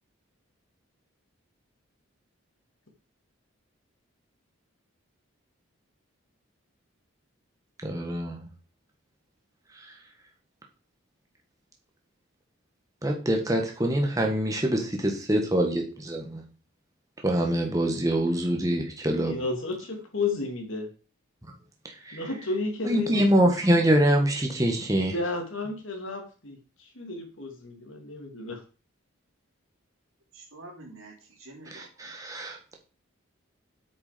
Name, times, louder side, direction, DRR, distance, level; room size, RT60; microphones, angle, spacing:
voice 1, 7.8-8.4 13.0-16.4 17.2-19.4 22.1-22.2 22.8-25.1 31.7-32.7, right 1 dB, 15° right, 2 dB, 1.9 m, -25 dB
voice 2, 19.2-20.9 22.1-23.5 24.9-28.6, left 3 dB, 70° left, 3 dB, 3.0 m, -32 dB
voice 3, 30.3-31.9, right 2 dB, 85° right, -5 dB, 3.8 m, -47 dB
8.8 x 7.2 x 5.4 m, 0.35 s
head